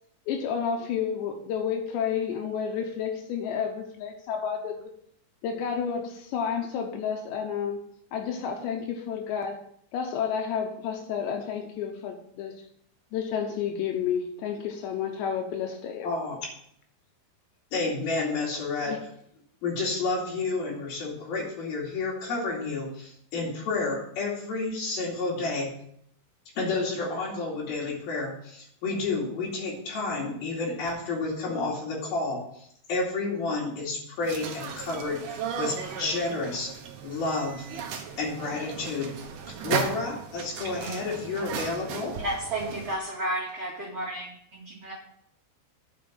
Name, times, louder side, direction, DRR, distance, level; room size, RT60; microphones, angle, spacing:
voice 1, 0.3-4.9 5.4-7.8 8.1-9.6 9.9-12.6 13.1-16.1 18.9-19.0, left 7 dB, 75° left, 3 dB, 3.1 m, -30 dB
voice 2, 16.0-16.4 17.7-19.0 19.6-25.7 26.6-36.7 37.0-37.7 38.2-39.2 39.5-42.1, left 3 dB, 55° left, -3 dB, 4.1 m, -30 dB
sound 1, 34.2-43.0, right 6 dB, 90° right, 1.8 m, -36 dB
voice 3, 40.6-41.0 42.2-44.9, right 1 dB, 45° right, -5 dB, 2.1 m, -33 dB
9.3 x 5.3 x 7.6 m, 0.69 s
omnidirectional pair, 5.4 m